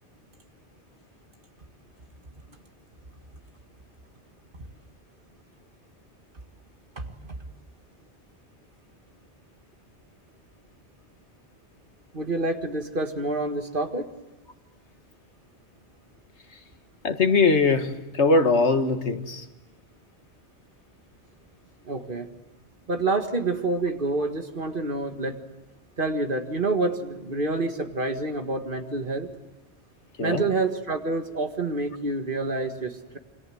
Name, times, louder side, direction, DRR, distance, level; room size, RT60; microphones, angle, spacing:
voice 1, 7.0-7.3 12.1-14.1 21.8-22.3 22.9-25.4 26.0-29.3 30.2-33.2, right 2 dB, 50° right, 6 dB, 2.0 m, -28 dB
voice 2, 17.0-19.5 30.2-30.5, left 3 dB, 85° left, 7 dB, 1.9 m, -21 dB
27.5 x 25.5 x 7.8 m, 1.1 s
omnidirectional pair, 1.1 m